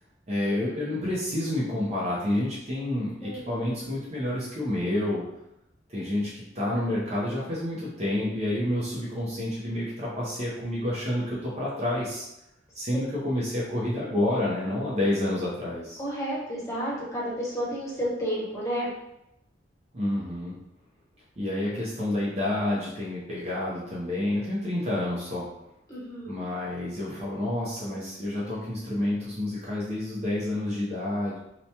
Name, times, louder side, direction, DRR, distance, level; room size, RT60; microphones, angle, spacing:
voice 1, 0.3-5.2 5.9-12.3 12.7-16.0 19.9-20.5 21.4-25.5 26.3-31.4, left 1 dB, 35° right, -7 dB, 0.6 m, -29 dB
voice 2, 3.2-3.7 16.0-18.9 25.9-26.3, equal, 15° left, -7 dB, 0.9 m, -31 dB
2.9 x 2.2 x 2.7 m, 0.85 s
head